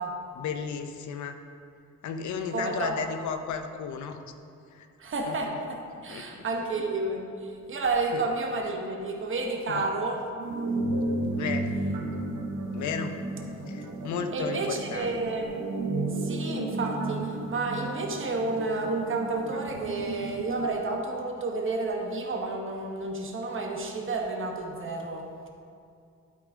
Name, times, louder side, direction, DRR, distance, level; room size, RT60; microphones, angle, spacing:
voice 1, 0.4-1.4 2.0-4.2 4.7-4.9 5.3-5.4 6.1-6.4 8.1-8.2 9.7-9.9 11.4-11.7 12.7-13.2 13.7-15.1, left 6 dB, 70° left, 7 dB, 0.7 m, -34 dB
voice 2, 2.5-3.0 5.0-10.3 14.3-15.6 16.1-25.3, right 3 dB, 45° right, 1 dB, 1.2 m, -31 dB
sound 1, 10.4-20.7, right 2 dB, 90° right, 1.0 m, -33 dB
12.0 x 5.0 x 3.7 m, 2.4 s
cardioid pair, 90°, 30 cm